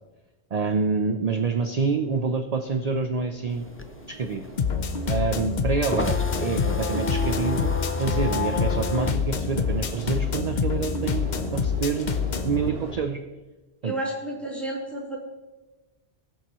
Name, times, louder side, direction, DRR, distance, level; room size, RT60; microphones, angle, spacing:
voice 1, 0.5-3.7 4.1-4.4 5.1-12.1 12.4-13.2 13.8-13.9, right 4 dB, 45° right, 7 dB, 0.6 m, -27 dB
sound 1, 1.7-12.9, right 2 dB, 70° right, 1.9 m, -40 dB
sound 2, 3.5-10.6 10.9-12.7, left 3 dB, 20° left, 0.4 m, -31 dB
sound 3, 4.6-12.6, left 6 dB, 50° left, 0.8 m, -27 dB
voice 2, 13.8-15.2, right 1 dB, ahead, -6 dB, 3.2 m, -31 dB
20.5 x 7.0 x 3.0 m, 1.1 s
omnidirectional pair, 1.1 m